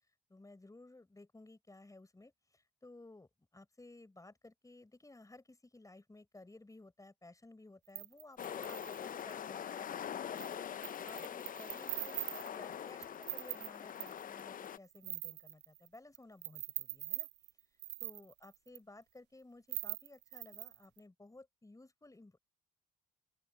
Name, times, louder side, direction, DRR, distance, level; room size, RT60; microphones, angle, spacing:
voice 1, 0.3-17.3 18.0-22.4, left 2 dB, 15° left, 4.8 m, -57 dB
sound 1, 7.9-9.3 10.4-10.5 10.8-14.4 14.6-16.2 16.4-18.8 19.7-21.0, right 17 dB, 65° right, 0.5 m, -42 dB
sound 2, 8.4-14.8, left 9 dB, 45° left, 0.8 m, -43 dB
open air
hypercardioid pair, 50°, 19 cm